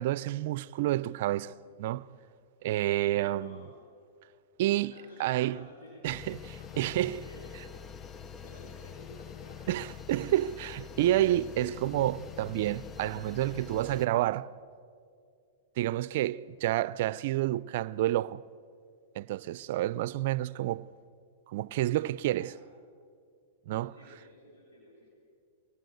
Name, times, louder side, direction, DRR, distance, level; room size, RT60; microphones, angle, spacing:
voice 1, 0.0-2.1 2.6-3.6 4.6-5.6 6.0-7.2 9.7-14.5 15.8-18.4 19.1-20.8 21.5-22.5 23.7-24.0, right 14 dB, 60° right, 0.6 m, -29 dB
voice 2, 2.8-3.7 4.8-6.1 6.5-7.5 8.2-9.8 22.3-22.6 23.8-25.1, left 2 dB, 75° left, 7.4 m, -53 dB
sound 1, 6.1-14.1, left 7 dB, 25° left, 0.6 m, -45 dB
24.0 x 19.0 x 8.0 m
hypercardioid pair, 125°, 0 cm